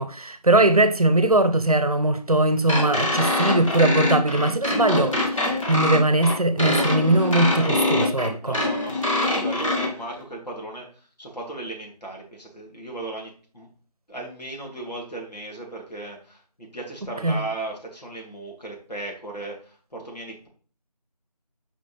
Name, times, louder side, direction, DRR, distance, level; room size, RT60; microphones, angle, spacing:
voice 1, 0.0-8.6 17.2-17.4, right 2 dB, 60° right, 0.8 m, -20 dB
sound 1, 2.7-9.9, left 1 dB, 50° left, 2.0 m, -24 dB
voice 2, 8.4-13.7 14.1-20.5, right 2 dB, 75° left, 3.0 m, -36 dB
6.5 x 5.0 x 3.4 m
figure-of-eight pair, 175°, 21 cm